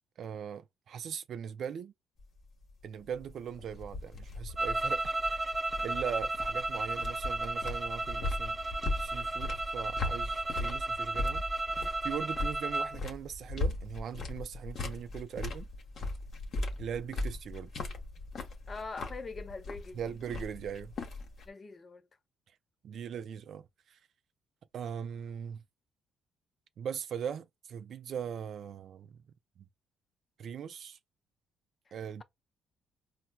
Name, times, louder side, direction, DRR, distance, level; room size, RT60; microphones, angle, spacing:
voice 1, 0.2-1.9 2.8-5.5 5.8-11.4 12.0-15.7 16.8-17.7 19.9-20.9 22.8-24.0 24.7-25.6 26.8-29.2 29.6-29.7 30.4-31.0 31.9-32.2, right 8 dB, 65° right, 0.3 m, -40 dB
sound 1, 2.2-21.5, left 2 dB, 60° left, 0.8 m, -39 dB
sound 2, 4.6-13.0, right 2 dB, 20° right, 0.6 m, -34 dB
voice 2, 18.7-20.0 21.5-22.0 31.9-32.2, left 3 dB, 35° left, 0.5 m, -43 dB
4.2 x 2.0 x 2.2 m
cardioid pair, 85°, 0 cm